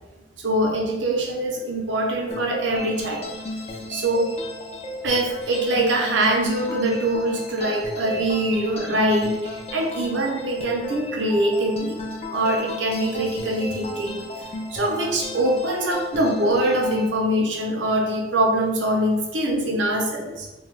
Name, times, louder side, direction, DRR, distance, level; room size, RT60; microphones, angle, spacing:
voice 1, 0.4-3.3 3.9-4.3 5.0-12.0 12.3-14.2 14.7-20.5, right 1 dB, 90° right, 0 dB, 0.6 m, -23 dB
sound 1, 2.3-17.1, left 1 dB, 35° left, 0.3 m, -34 dB
2.7 x 2.3 x 3.1 m, 1.1 s
head